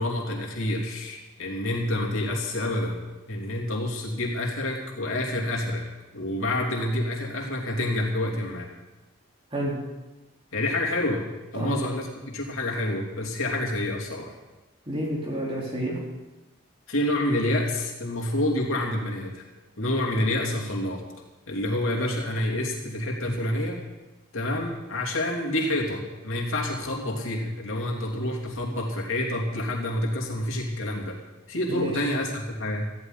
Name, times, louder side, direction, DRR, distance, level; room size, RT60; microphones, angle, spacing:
voice 1, 0.0-5.8 6.1-8.7 10.5-11.2 11.5-14.3 16.9-19.4 19.8-21.0 21.5-23.8 24.3-31.2 31.5-33.0, left 1 dB, 80° left, -1 dB, 2.9 m, -28 dB
voice 2, 14.9-16.0 31.7-32.0, right 1 dB, 25° right, -4 dB, 3.9 m, -30 dB
18.5 x 14.5 x 4.0 m, 1.1 s
head